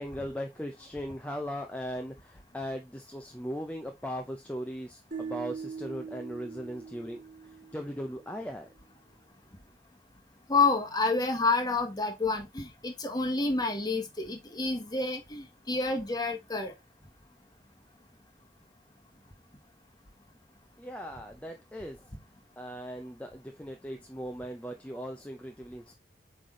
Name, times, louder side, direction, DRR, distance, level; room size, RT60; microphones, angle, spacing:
voice 1, 0.0-8.7 20.8-22.1 22.6-25.9, equal, 10° left, 0.6 m, -38 dB
sound 1, 5.1-8.3, right 5 dB, 50° right, 2.0 m, -41 dB
voice 2, 10.5-16.7, left 3 dB, 25° left, 1.3 m, -29 dB
8.2 x 3.4 x 3.7 m
head